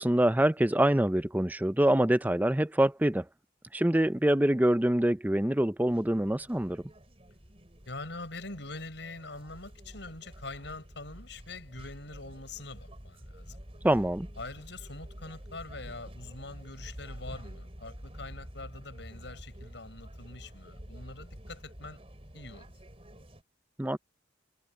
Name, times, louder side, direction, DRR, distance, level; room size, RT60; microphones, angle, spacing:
voice 1, 0.0-3.2 3.7-6.8 13.8-14.3 23.8-24.0, right 1 dB, 10° right, 0.6 m, -25 dB
sound 1, 5.9-23.4, equal, 30° right, 4.5 m, -48 dB
voice 2, 7.8-13.6 14.4-22.0 22.3-22.7, left 3 dB, 70° left, 6.6 m, -44 dB
head